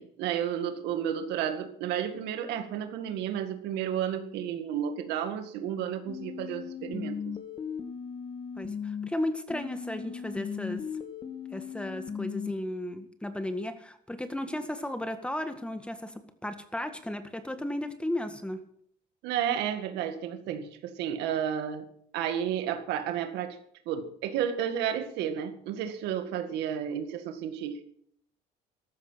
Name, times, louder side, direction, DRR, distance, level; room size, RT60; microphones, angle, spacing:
voice 1, 0.0-7.4 19.2-21.9 22.1-23.6 23.9-27.8, right 9 dB, 90° right, 7 dB, 2.0 m, -32 dB
sound 1, 6.1-9.1 9.5-12.5, left 7 dB, 30° left, 1.9 m, -37 dB
voice 2, 8.6-10.8 11.5-18.6, left 1 dB, 5° left, 8 dB, 1.7 m, -35 dB
14.0 x 12.5 x 5.8 m, 0.64 s
cardioid pair, 110°, 17 cm